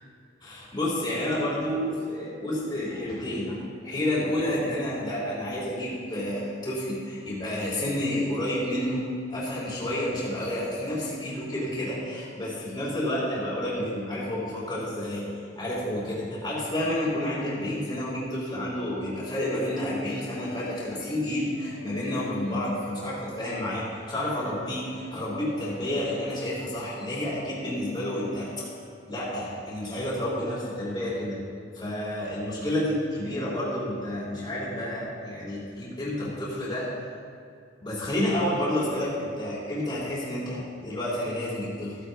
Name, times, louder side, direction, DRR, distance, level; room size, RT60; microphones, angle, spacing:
voice 1, 0.4-9.0 9.3-15.2 15.5-28.6 29.1-31.4 31.7-36.9 37.8-42.0, left 1 dB, 25° left, -8 dB, 3.1 m, -30 dB
sound 1, 20.0-29.4, left 1 dB, 85° left, 1.0 m, -45 dB
14.5 x 9.3 x 3.4 m, 2.3 s
head